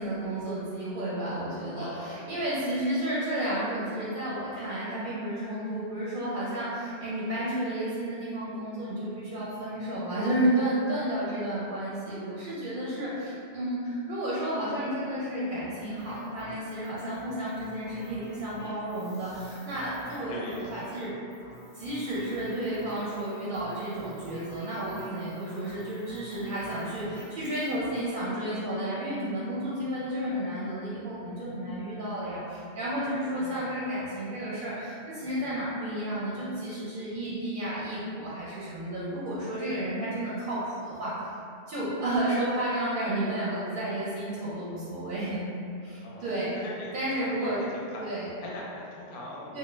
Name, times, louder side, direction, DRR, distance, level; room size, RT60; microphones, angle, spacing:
voice 1, 0.0-21.1 21.7-41.3 41.7-45.4 45.8-46.5 46.9-47.6 48.0-48.3 49.5-49.6, right 1 dB, 60° right, -8 dB, 0.6 m, -32 dB
voice 2, 1.7-2.4 20.1-21.2 33.2-33.5 46.0-46.2 46.5-48.1 48.4-49.6, left 2 dB, 60° left, -4 dB, 0.6 m, -41 dB
sound 1, 16.0-28.0, left 1 dB, 15° left, 0.4 m, -49 dB
2.3 x 2.0 x 3.1 m, 2.5 s
omnidirectional pair, 1.1 m